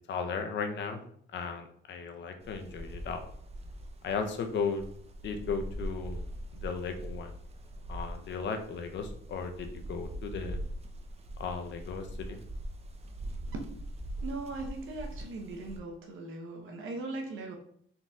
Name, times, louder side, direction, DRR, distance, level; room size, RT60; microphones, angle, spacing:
voice 1, 0.1-1.0 1.3-3.2 4.0-4.8 5.2-6.3 6.6-7.3 7.9-10.6 11.4-12.4, left 5 dB, 65° left, 5 dB, 0.7 m, -35 dB
sound 1, 2.4-15.8, right 1 dB, 30° right, 0.6 m, -42 dB
voice 2, 14.2-17.6, right 3 dB, 80° right, 2 dB, 0.8 m, -39 dB
3.9 x 3.9 x 2.3 m, 0.63 s
cardioid pair, 90°, 20 cm